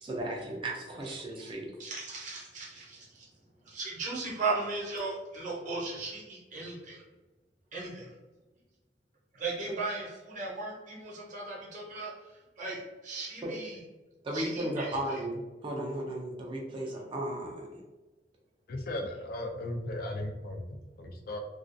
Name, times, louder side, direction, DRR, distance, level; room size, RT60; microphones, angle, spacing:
voice 1, 0.0-1.7 13.4-13.5 14.2-17.7, right 1 dB, 30° right, -1 dB, 0.4 m, -35 dB
voice 2, 1.8-3.2 3.6-7.0 7.7-8.1 9.3-12.1 12.6-13.8 14.3-15.2, right 3 dB, 45° right, -4 dB, 0.8 m, -37 dB
voice 3, 18.7-21.4, left 1 dB, 55° left, 3 dB, 0.4 m, -36 dB
2.4 x 2.3 x 2.5 m, 1.2 s
head